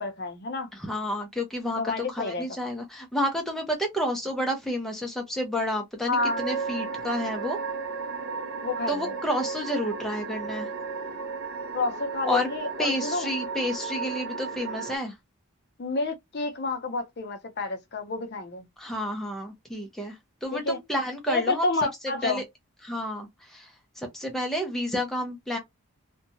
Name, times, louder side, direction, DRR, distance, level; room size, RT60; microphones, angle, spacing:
voice 1, 0.0-0.7 1.8-2.5 6.1-6.4 8.6-9.1 11.7-13.3 15.8-18.7 20.5-20.8 21.3-22.4, left 3 dB, 45° left, 0.6 m, -29 dB
voice 2, 0.8-7.6 8.9-10.7 12.2-12.5 12.8-15.1 18.8-21.6 22.2-22.4 22.8-25.6, equal, ahead, 0.5 m, -30 dB
sound 1, 6.2-15.0, right 4 dB, 45° right, 0.5 m, -34 dB
2.7 x 2.2 x 2.6 m
head